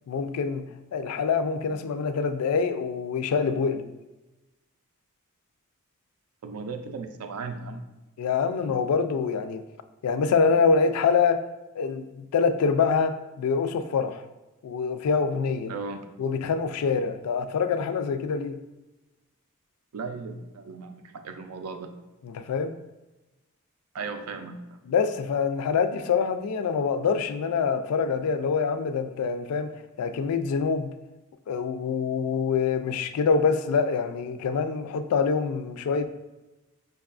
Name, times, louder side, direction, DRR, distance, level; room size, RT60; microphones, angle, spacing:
voice 1, 0.1-0.7 0.9-3.9 8.2-9.6 10.0-11.4 11.8-14.2 14.6-15.7 16.2-18.6 22.2-22.7 24.9-29.7 30.0-30.9 31.5-36.1, left 5 dB, 80° left, 9 dB, 0.3 m, -25 dB
voice 2, 6.4-7.9 15.7-16.0 19.9-21.9 23.9-24.8, right 4 dB, 80° right, 7 dB, 0.4 m, -36 dB
5.2 x 2.3 x 2.4 m, 1.1 s
head